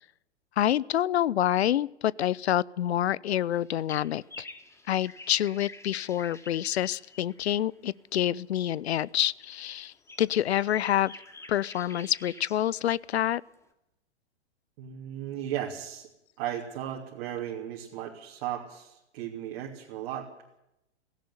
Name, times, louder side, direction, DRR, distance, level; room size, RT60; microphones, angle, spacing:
voice 1, 0.6-4.5 4.9-11.1 11.5-13.4, left 11 dB, 70° left, 23 dB, 0.7 m, -27 dB
sound 1, 3.5-7.6 8.8-9.1 9.4-12.9 13.1-13.2 13.5-13.6, left 2 dB, 10° left, 2.4 m, -48 dB
voice 2, 14.8-16.1 16.4-20.3, right 11 dB, 45° right, 0 dB, 2.9 m, -36 dB
17.0 x 16.5 x 9.8 m, 0.86 s
figure-of-eight pair, 110°, 34 cm